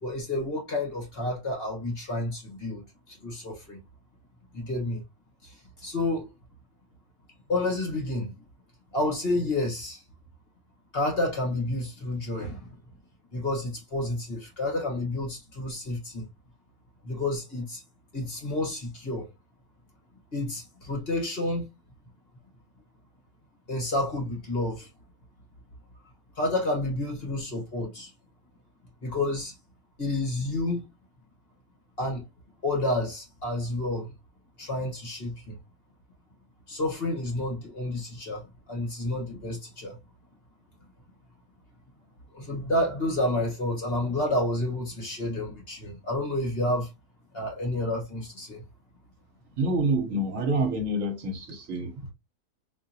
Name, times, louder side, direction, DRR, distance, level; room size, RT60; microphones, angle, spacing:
voice 1, 0.0-3.8 4.5-5.0 5.4-5.5 5.8-6.3 7.5-8.3 8.9-10.0 10.9-12.7 13.3-16.2 17.0-17.8 18.1-19.3 20.3-21.7 23.7-24.9 26.4-28.1 29.0-29.6 30.0-30.8 32.0-32.2 32.6-34.1 34.6-35.6 36.7-38.4 38.7-40.0 42.3-46.9 47.3-48.6, left 1 dB, 40° left, 1.4 m, -30 dB
voice 2, 49.6-52.1, right 2 dB, 60° right, 1.1 m, -27 dB
3.7 x 2.8 x 2.7 m
omnidirectional pair, 1.7 m